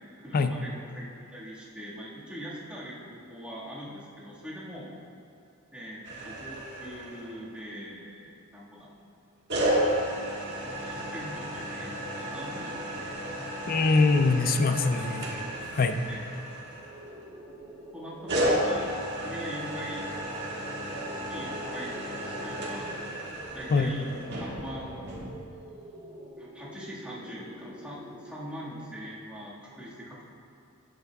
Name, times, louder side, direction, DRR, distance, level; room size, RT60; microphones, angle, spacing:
voice 1, 0.2-4.9 5.7-8.9 10.8-13.4 14.8-15.5 16.1-16.3 17.9-20.1 20.8-23.0 23.5-24.1 24.4-25.1 26.4-30.2, equal, 5° right, -8 dB, 1.7 m, -42 dB
sound 1, 6.0-7.6 9.5-17.3 18.3-25.3, equal, 55° right, 1.4 m, -33 dB
voice 2, 13.7-15.3 15.7-16.0 23.7-23.9, left 3 dB, 40° left, 8 dB, 0.4 m, -23 dB
sound 2, 16.8-29.6, equal, 25° right, 1.0 m, -46 dB
11.0 x 8.2 x 2.3 m, 2.6 s
head